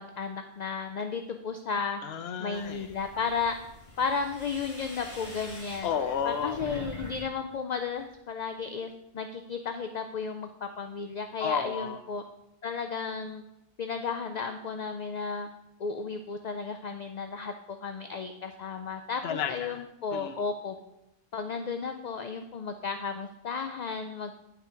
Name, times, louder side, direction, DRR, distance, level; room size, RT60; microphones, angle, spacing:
voice 1, 0.0-2.0 2.4-3.6 4.0-5.9 6.2-12.2 12.6-13.4 13.8-15.5 15.8-20.8 21.3-24.3, left 5 dB, 50° left, 7 dB, 0.6 m, -34 dB
voice 2, 2.0-2.9 5.8-6.6 11.4-12.0 19.2-19.8 20.1-20.4, left 7 dB, 85° left, 8 dB, 0.9 m, -32 dB
sound 1, 2.5-7.2 7.5-8.1, left 1 dB, 30° left, 1.8 m, -45 dB
11.0 x 4.8 x 5.0 m, 0.86 s
omnidirectional pair, 1.0 m